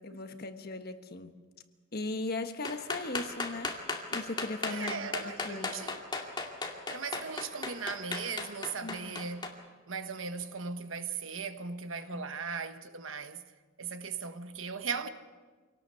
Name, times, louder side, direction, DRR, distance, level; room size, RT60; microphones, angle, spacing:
voice 1, 0.0-1.4 1.9-3.8 4.1-5.9 8.8-9.1 12.1-12.3, left 2 dB, 50° left, 1.4 m, -38 dB
sound 1, 2.6-9.5, left 3 dB, 25° left, 2.3 m, -35 dB
voice 2, 4.7-6.0 6.9-9.6 9.9-13.4 13.8-15.1, right 5 dB, 80° right, 1.3 m, -38 dB
26.0 x 18.5 x 6.9 m
head